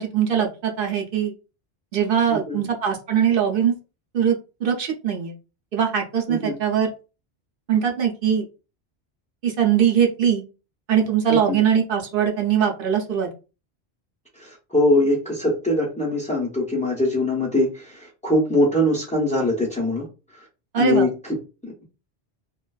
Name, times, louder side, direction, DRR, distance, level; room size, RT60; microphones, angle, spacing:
voice 1, 0.0-1.3 1.9-3.7 4.1-5.3 5.7-6.9 7.7-8.4 9.4-10.4 10.9-13.3 20.7-21.0, right 8 dB, 60° right, 1 dB, 0.7 m, -21 dB
voice 2, 2.3-2.6 6.3-6.6 11.3-11.6 14.3-20.1 20.3-20.4 20.8-21.9, left 1 dB, 10° left, -5 dB, 0.5 m, -22 dB
2.4 x 2.2 x 2.3 m, 0.31 s
omnidirectional pair, 1.1 m